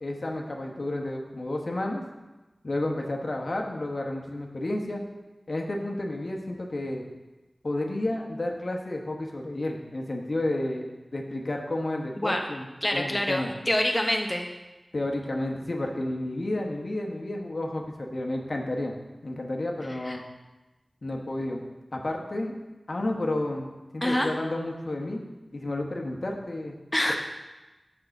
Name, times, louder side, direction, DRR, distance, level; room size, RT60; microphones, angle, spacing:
voice 1, 0.0-2.0 2.6-5.0 5.5-7.0 7.6-10.9 11.1-12.7 12.9-13.5 14.9-18.9 19.2-20.2 21.0-21.6 21.9-22.5 22.9-25.2 25.5-26.8, left 1 dB, 60° left, 1 dB, 1.1 m, -31 dB
voice 2, 12.8-14.5 20.0-20.2 24.0-24.3 26.9-27.2, left 1 dB, 15° left, 2 dB, 0.8 m, -26 dB
6.6 x 5.6 x 5.9 m, 1.1 s
wide cardioid pair, 45°, 0 cm